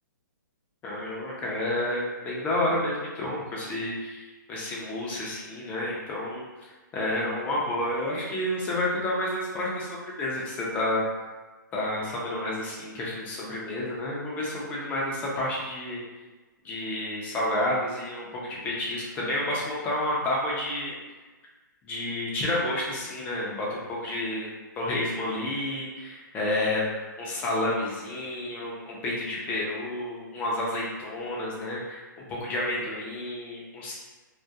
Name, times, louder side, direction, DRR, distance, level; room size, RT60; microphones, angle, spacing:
voice 1, 0.8-11.0 11.7-16.0 16.6-21.0 21.8-32.0 32.3-33.9, left 1 dB, 15° left, -4 dB, 0.4 m, -30 dB
2.3 x 2.1 x 2.6 m, 1.3 s
hypercardioid pair, 155°, 11 cm